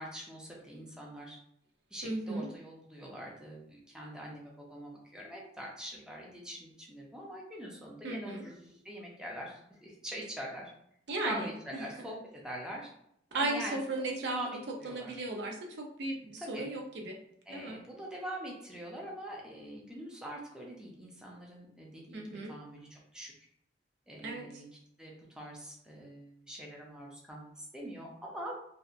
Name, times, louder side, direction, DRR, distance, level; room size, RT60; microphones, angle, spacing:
voice 1, 0.0-1.4 1.9-10.7 11.2-12.9 13.4-13.8 14.2-15.1 16.4-16.7 17.5-23.3 24.1-24.7 25.0-28.6, equal, 5° right, -3 dB, 0.5 m, -44 dB
voice 2, 2.0-2.5 8.0-8.4 11.1-11.5 13.3-14.4 14.8-17.2 17.5-17.8 22.1-22.5 24.2-24.6, right 2 dB, 65° right, 1 dB, 0.5 m, -36 dB
2.7 x 2.1 x 2.4 m, 0.72 s
head